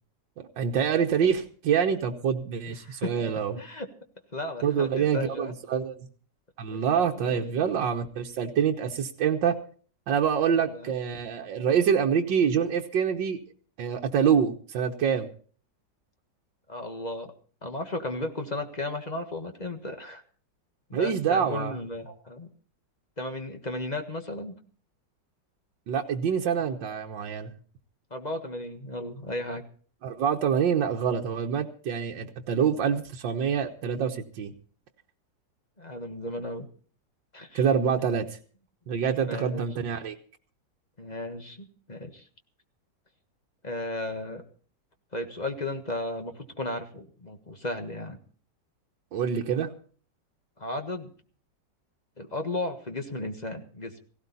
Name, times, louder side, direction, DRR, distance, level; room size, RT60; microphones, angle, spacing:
voice 1, 0.6-3.6 4.6-6.1 6.6-9.6 10.1-13.4 13.8-15.3 20.9-21.8 25.9-27.5 30.0-34.5 37.5-38.4 38.9-40.2 49.1-49.7, right 7 dB, 80° right, 2 dB, 1.8 m, -26 dB
voice 2, 3.6-3.9 4.3-5.5 6.7-6.8 7.2-7.5 10.6-10.9 16.7-17.3 17.6-20.2 20.9-22.5 23.2-24.5 28.1-29.6 35.8-36.7 37.3-37.6 38.0-38.1 39.3-39.6 41.0-42.2 43.6-44.4 45.1-48.2 50.6-51.1 52.2-54.0, left 2 dB, 25° left, 5 dB, 1.5 m, -35 dB
17.0 x 16.5 x 4.1 m, 0.43 s
omnidirectional pair, 2.0 m